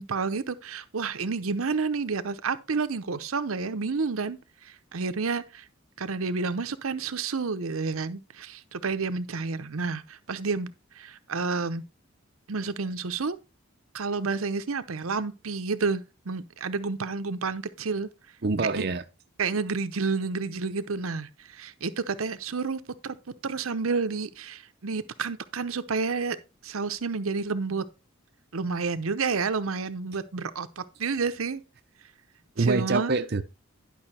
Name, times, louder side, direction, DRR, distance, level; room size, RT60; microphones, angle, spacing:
voice 1, 0.0-4.4 4.6-5.6 6.0-11.8 12.5-13.4 13.9-18.1 18.7-18.9 19.4-23.2 23.4-26.4 26.6-27.8 28.5-31.6 32.6-33.2, right 4 dB, 80° right, 0.8 m, -30 dB
voice 2, 18.4-19.0 32.6-33.4, right 3 dB, 50° right, 0.6 m, -25 dB
11.0 x 5.6 x 4.3 m
head